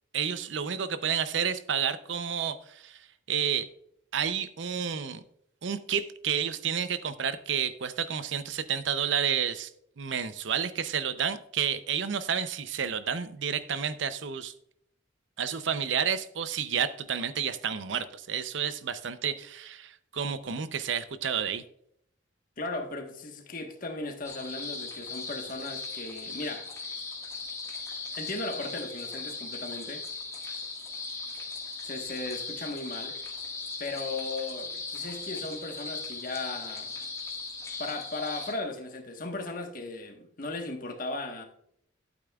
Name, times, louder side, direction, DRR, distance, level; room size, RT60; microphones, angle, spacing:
voice 1, 0.1-3.7 4.1-5.2 5.6-9.7 10.0-14.5 15.4-21.6, right 7 dB, 75° right, 13 dB, 0.6 m, -30 dB
voice 2, 22.6-26.7 28.1-30.0 31.8-33.2 33.8-37.0 37.8-41.4, left 2 dB, 45° left, 4 dB, 1.3 m, -37 dB
sound 1, 24.2-38.5, left 4 dB, 15° left, 1.6 m, -38 dB
12.0 x 8.6 x 2.3 m, 0.69 s
head